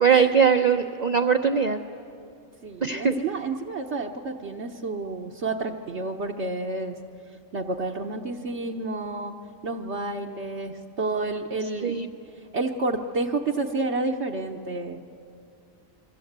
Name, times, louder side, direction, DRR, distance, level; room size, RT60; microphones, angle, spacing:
voice 1, 0.0-1.8 2.8-3.1 11.8-12.1, right 6 dB, 40° right, 4 dB, 0.8 m, -20 dB
voice 2, 2.6-7.0 7.5-9.3 9.6-12.0 12.5-15.0, right 3 dB, 60° right, 1 dB, 1.3 m, -30 dB
28.0 x 22.5 x 8.1 m, 2.6 s
omnidirectional pair, 1.4 m